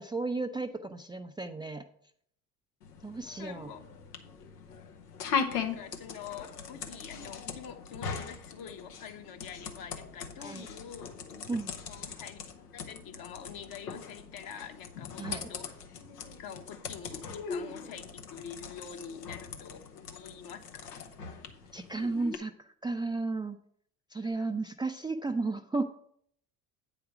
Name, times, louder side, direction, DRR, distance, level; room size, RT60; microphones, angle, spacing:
voice 1, 0.0-1.8 3.0-3.7 10.4-10.7 11.5-11.7 15.2-15.5 21.7-23.6 24.1-25.8, right 3 dB, 10° right, 5 dB, 0.5 m, -34 dB
sound 1, 2.8-22.4, left 6 dB, 85° left, 1.0 m, -40 dB
voice 2, 3.4-3.8 5.2-11.5 11.9-12.4 12.7-15.6 16.4-21.0 24.2-24.5, left 7 dB, 50° left, 7 dB, 1.2 m, -46 dB
8.6 x 5.0 x 5.9 m, 0.66 s
hypercardioid pair, 65°, 46 cm